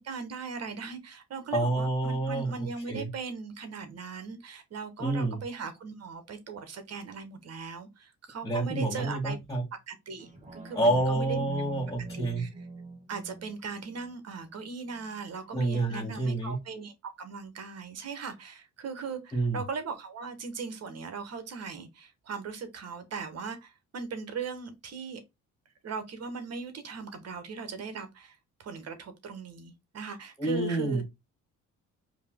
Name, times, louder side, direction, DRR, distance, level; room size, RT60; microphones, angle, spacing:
voice 1, 0.0-9.4 9.9-11.4 12.1-12.7 13.1-25.2 25.8-31.0, right 5 dB, 55° right, 1.4 m, -39 dB
voice 2, 1.5-3.1 5.0-5.4 8.4-9.6 10.7-12.4 15.5-16.6 19.3-19.6 30.4-31.0, right 2 dB, 10° left, 1.6 m, -28 dB
sound 1, 10.2-15.2 15.7-15.8, right 2 dB, 25° right, 1.7 m, -45 dB
4.6 x 2.9 x 3.6 m
cardioid pair, 90°, 30 cm